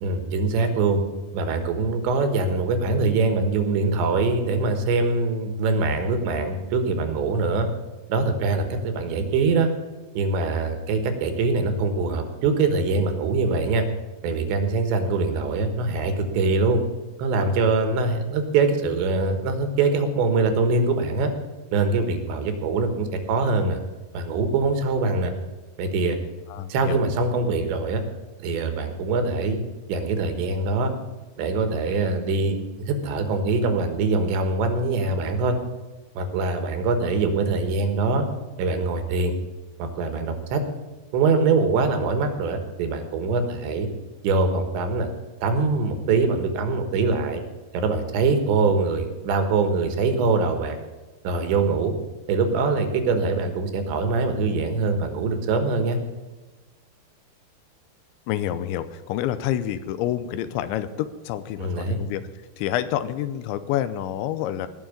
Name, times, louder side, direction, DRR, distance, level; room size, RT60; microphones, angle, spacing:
voice 1, 0.0-1.0 1.3-7.7 8.1-9.7 10.2-13.9 14.2-16.8 17.2-21.3 21.7-23.8 24.1-25.3 25.8-26.2 26.7-28.0 28.4-29.6 29.9-30.9 31.4-35.6 36.2-38.3 38.6-39.3 39.8-40.6 41.1-43.9 44.2-45.1 45.4-47.4 47.7-50.8 51.3-52.0 52.3-56.0 61.6-62.0, right 3 dB, 80° right, 7 dB, 3.6 m, -23 dB
voice 2, 26.5-27.0 58.3-62.2 62.6-64.7, left 11 dB, 85° left, 13 dB, 3.0 m, -28 dB
18.0 x 6.4 x 8.6 m, 1.2 s
omnidirectional pair, 5.3 m